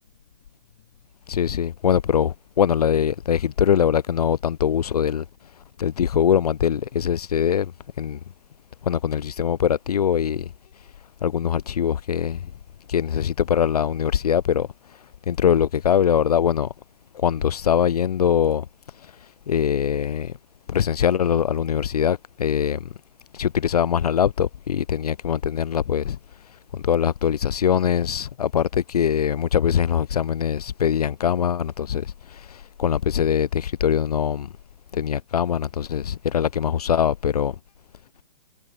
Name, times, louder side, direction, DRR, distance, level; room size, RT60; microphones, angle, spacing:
voice 1, 1.3-5.2 5.8-7.7 8.0-8.2 8.8-10.5 11.2-12.4 12.9-16.7 17.1-18.7 19.0-20.3 20.7-22.9 23.3-26.2 26.7-34.5 34.9-37.6, left 9 dB, 75° left, 0.8 m, -22 dB
hypercardioid pair, 165°, 20 cm